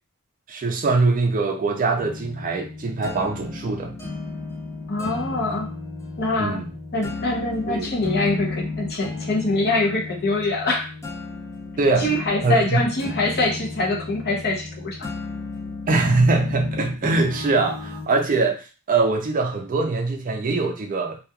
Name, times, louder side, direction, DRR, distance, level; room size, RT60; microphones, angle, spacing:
voice 1, 0.5-3.9 6.4-6.7 7.7-7.9 11.8-12.1 12.4-12.8 15.9-21.2, right 3 dB, 40° right, 3 dB, 0.4 m, -22 dB
sound 1, 2.0-18.1, left 3 dB, 10° left, 0.7 m, -33 dB
voice 2, 4.9-5.7 6.2-6.6 6.9-10.9 12.0-15.1, left 2 dB, 45° left, 0 dB, 0.7 m, -24 dB
2.9 x 2.3 x 2.3 m, 0.33 s
head